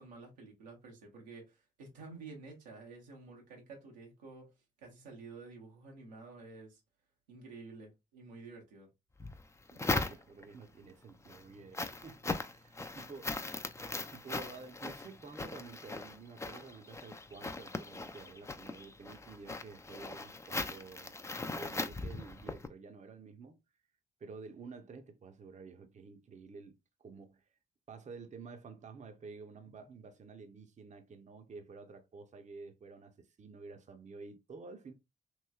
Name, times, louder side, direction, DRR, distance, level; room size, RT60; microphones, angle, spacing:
voice 1, 0.0-4.5 4.8-6.8 7.3-8.9, right 3 dB, 90° right, 0.9 m, -51 dB
sound 1, 9.2-10.6 11.1-22.7, left 3 dB, 15° left, 0.4 m, -39 dB
voice 2, 9.7-13.4 13.9-21.2 21.4-23.6 24.2-27.5 27.9-34.9, right 4 dB, 35° right, 0.6 m, -51 dB
3.0 x 3.0 x 2.3 m
hypercardioid pair, 45°, 21 cm